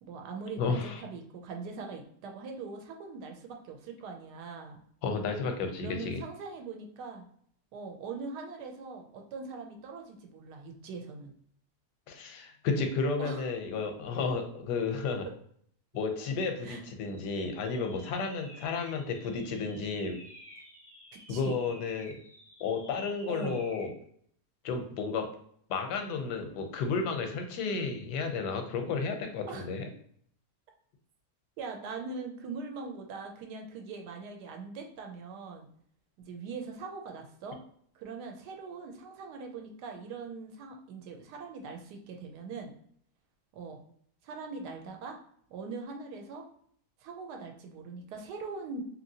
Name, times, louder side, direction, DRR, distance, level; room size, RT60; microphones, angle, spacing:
voice 1, 0.0-4.8 5.8-7.2 7.7-11.3 13.2-13.5 16.6-16.8 21.1-21.6 23.3-23.6 29.5-29.6 31.6-35.7 36.3-37.6 37.9-42.7 43.5-43.8 44.2-45.2 45.5-46.5 47.0-48.8, right 4 dB, 80° right, 3 dB, 1.1 m, -41 dB
voice 2, 0.6-1.0 5.0-6.2 12.1-15.3 15.9-20.2 21.3-22.2 22.6-23.9 24.6-25.2 25.7-29.9, left 4 dB, 85° left, 5 dB, 1.2 m, -32 dB
sound 1, 17.0-24.0, equal, 35° left, 0.4 m, -52 dB
2.8 x 2.8 x 2.7 m, 0.64 s
omnidirectional pair, 1.7 m